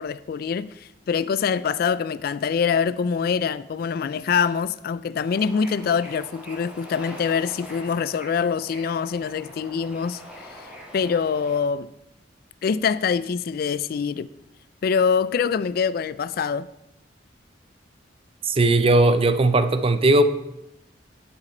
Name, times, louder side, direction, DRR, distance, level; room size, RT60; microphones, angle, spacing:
voice 1, 0.0-11.9 12.6-14.3 14.8-16.7, left 6 dB, 55° left, 0.3 m, -25 dB
Bird / Ocean, 5.2-11.6, equal, 5° right, 1.9 m, -43 dB
voice 2, 18.5-20.2, right 2 dB, 30° right, 0.6 m, -18 dB
9.5 x 7.2 x 4.3 m
head